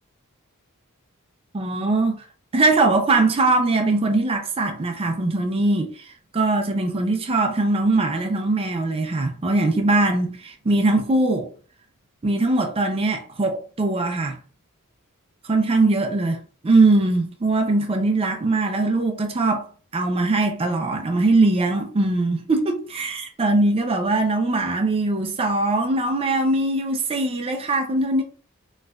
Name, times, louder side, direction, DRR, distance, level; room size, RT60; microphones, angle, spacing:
voice 1, 1.5-2.3 2.5-11.5 12.2-14.4 15.4-19.7 19.9-28.2, right 2 dB, 25° right, 0.4 m, -21 dB
4.1 x 2.4 x 2.3 m
head